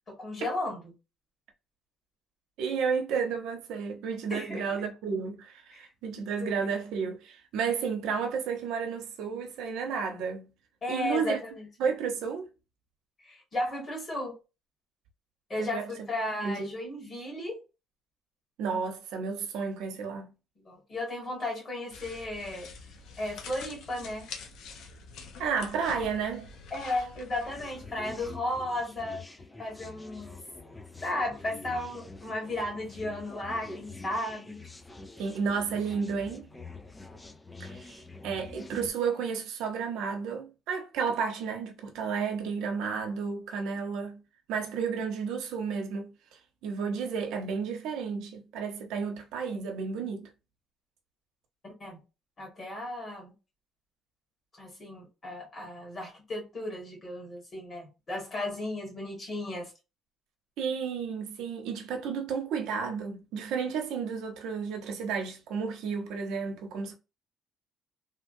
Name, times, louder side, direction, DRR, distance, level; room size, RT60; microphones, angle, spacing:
voice 1, 0.1-0.8 4.3-4.9 5.7-5.8 6.4-6.7 10.8-11.6 13.2-14.4 15.5-17.6 20.6-22.7 23.2-24.3 26.0-26.1 26.7-29.2 29.6-30.4 31.0-34.6 51.8-52.0 52.4-53.3 54.6-59.7, left 1 dB, 30° left, 1.6 m, -34 dB
voice 2, 2.6-10.5 10.9-11.4 11.8-12.5 15.6-15.9 16.4-16.7 18.6-20.3 25.4-26.5 35.2-36.5 37.6-44.2 44.5-50.3 60.6-66.9, right 6 dB, 90° right, 0.8 m, -32 dB
sound 1, 21.9-28.4, left 4 dB, 65° left, 0.7 m, -46 dB
sound 2, 27.5-38.9, left 3 dB, 10° left, 0.3 m, -46 dB
3.3 x 2.2 x 2.6 m
cardioid pair, 165°, 0 cm